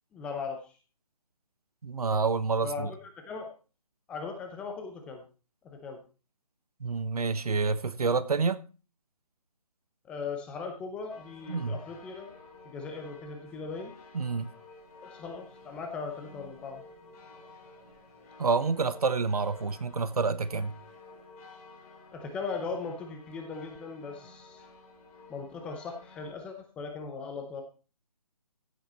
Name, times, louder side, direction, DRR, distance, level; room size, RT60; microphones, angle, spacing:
voice 1, 0.1-0.7 2.6-3.5 4.1-5.2 5.6-6.0 10.1-12.3 12.6-13.9 15.0-16.8 22.1-24.6 25.3-27.6, left 4 dB, 5° left, 0.7 m, -38 dB
voice 2, 1.8-2.9 6.8-8.6 11.5-11.8 14.1-14.5 18.4-20.7, right 4 dB, 70° right, 1.2 m, -28 dB
sound 1, 11.1-26.3, left 3 dB, 25° left, 3.6 m, -52 dB
15.0 x 7.9 x 4.3 m
hypercardioid pair, 165°, 20 cm